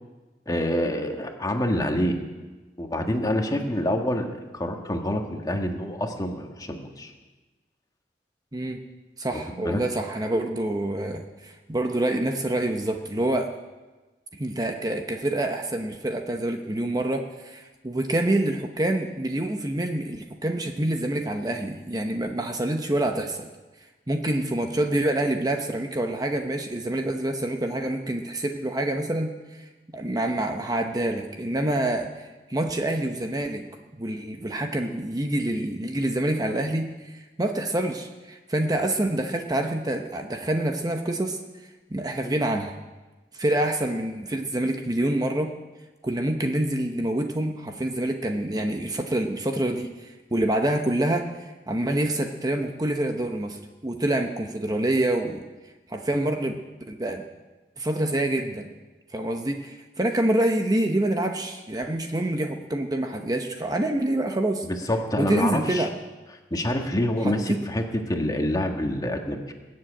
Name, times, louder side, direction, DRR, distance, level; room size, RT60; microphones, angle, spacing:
voice 1, 0.5-2.2 2.8-7.1 9.3-9.8 64.6-65.9 66.5-69.5, left 1 dB, 20° left, 3 dB, 1.6 m, -27 dB
voice 2, 9.2-13.5 14.3-23.5 24.1-33.6 34.0-41.4 41.9-42.7 43.3-45.5 46.0-55.4 55.9-56.6 56.9-57.2 57.8-58.7 59.1-64.7 65.2-65.9 67.2-67.6, right 1 dB, 20° right, 4 dB, 0.9 m, -26 dB
20.5 x 7.7 x 8.8 m, 1.2 s
head